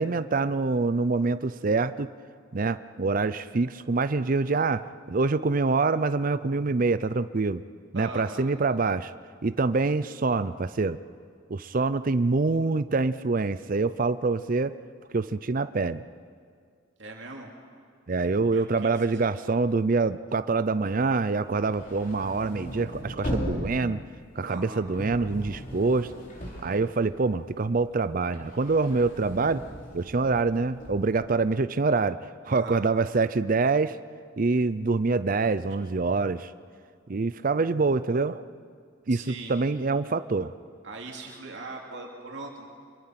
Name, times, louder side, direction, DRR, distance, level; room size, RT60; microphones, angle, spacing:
voice 1, 0.0-2.1 2.5-7.6 7.9-9.1 9.4-11.0 11.5-14.8 15.1-16.0 18.1-24.0 24.4-26.1 26.6-29.6 29.9-34.0 34.4-36.5 37.1-38.4 39.1-40.5, right 3 dB, 40° right, 14 dB, 0.5 m, -25 dB
voice 2, 7.9-8.4 17.0-17.5 18.5-18.9 24.4-24.8 32.5-32.8 39.1-39.5 40.8-42.6, right 2 dB, 60° right, 0 dB, 2.7 m, -40 dB
sound 1, 21.4-27.5 27.9-31.2, equal, 40° left, 3.8 m, -38 dB
25.5 x 23.0 x 5.9 m, 2.1 s
head